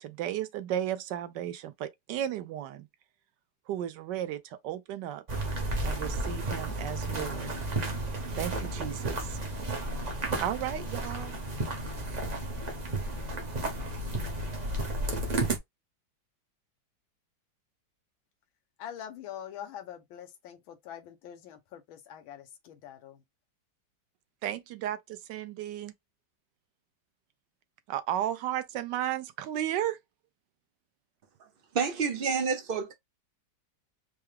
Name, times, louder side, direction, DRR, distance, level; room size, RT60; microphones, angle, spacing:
voice 1, 0.0-2.9 3.7-5.2 5.8-7.5 8.4-9.4 10.4-11.4 24.4-25.9 27.9-30.0, right 11 dB, 75° right, 1.1 m, -34 dB
sound 1, 5.3-15.6, right 2 dB, 40° right, 0.5 m, -33 dB
voice 2, 18.8-23.2, left 10 dB, 90° left, 1.6 m, -44 dB
voice 3, 31.7-32.9, right 5 dB, 90° right, 0.4 m, -29 dB
4.7 x 2.1 x 3.2 m
omnidirectional pair, 2.1 m